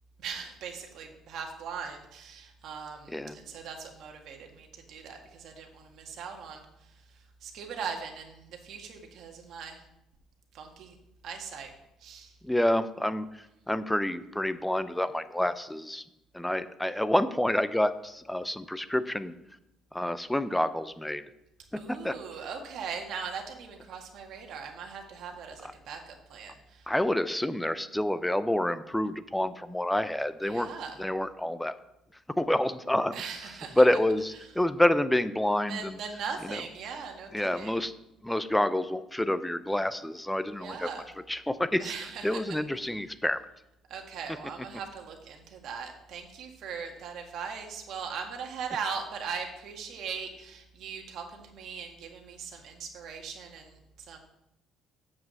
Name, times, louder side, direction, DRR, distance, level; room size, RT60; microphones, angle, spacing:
voice 1, 0.2-9.8 10.5-11.0 11.2-11.7 12.0-12.4 21.8-26.9 30.4-31.0 33.1-33.8 35.7-37.7 40.5-41.1 41.8-42.6 43.9-54.2, right 6 dB, 60° right, 3 dB, 1.8 m, -40 dB
voice 2, 12.4-16.0 16.3-19.3 19.9-21.2 21.7-22.1 26.9-30.7 31.0-31.8 32.4-33.2 33.8-36.0 36.4-36.6 37.3-37.9 38.2-40.9 41.3-41.9 42.2-43.4, left 1 dB, 5° left, 13 dB, 0.5 m, -28 dB
7.5 x 6.0 x 7.6 m, 0.86 s
cardioid pair, 145°, 0 cm